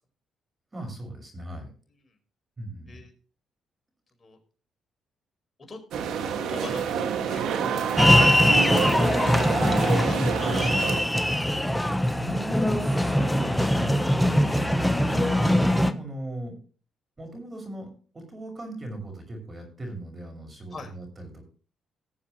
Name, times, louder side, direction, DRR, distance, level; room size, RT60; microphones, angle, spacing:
voice 1, 0.7-1.7 2.6-3.0 12.1-14.0 14.9-16.6 17.2-21.4, right 1 dB, 25° right, 4 dB, 6.0 m, -37 dB
sound 1, 5.9-11.0, right 7 dB, 80° right, 2.1 m, -28 dB
voice 2, 6.5-7.9 8.8-11.1 20.7-20.9, left 3 dB, 30° left, 2 dB, 5.0 m, -43 dB
sound 2, 8.0-15.9, left 1 dB, 5° left, 1.1 m, -22 dB
20.0 x 7.2 x 3.2 m, 0.40 s
cardioid pair, 90°, 0 cm